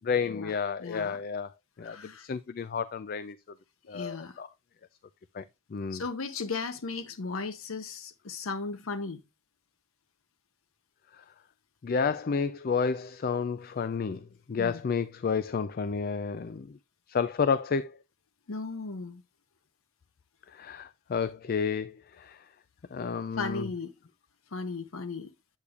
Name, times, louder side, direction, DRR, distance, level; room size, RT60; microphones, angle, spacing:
voice 1, 0.1-1.5 1.8-3.3 3.9-4.5 5.3-5.4 5.7-6.0 11.8-16.7 17.1-17.9 20.5-22.4 22.9-23.7, left 5 dB, 45° left, 0.4 m, -31 dB
voice 2, 0.8-1.2 1.8-2.3 3.9-4.3 5.9-9.2 14.6-14.8 18.5-19.2 23.4-23.9 24.5-25.3, left 4 dB, 80° left, 0.7 m, -36 dB
8.5 x 8.2 x 2.4 m
head